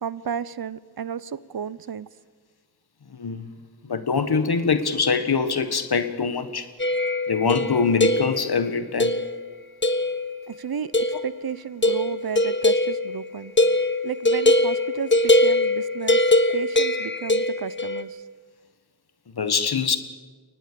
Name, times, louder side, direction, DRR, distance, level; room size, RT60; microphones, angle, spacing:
voice 1, 0.0-2.1 10.5-13.5 14.0-16.2 16.5-18.2, right 7 dB, 70° right, 18 dB, 0.8 m, -32 dB
voice 2, 3.1-3.5 3.8-6.7 7.3-9.1 19.3-20.0, left 5 dB, 85° left, 10 dB, 1.6 m, -23 dB
sound 1, 6.8-8.6 9.0-9.4 9.8-10.4 10.9-11.3 11.8-18.0, left 1 dB, 30° left, 1.5 m, -22 dB
23.0 x 19.0 x 6.9 m, 1.5 s
wide cardioid pair, 60°, 37 cm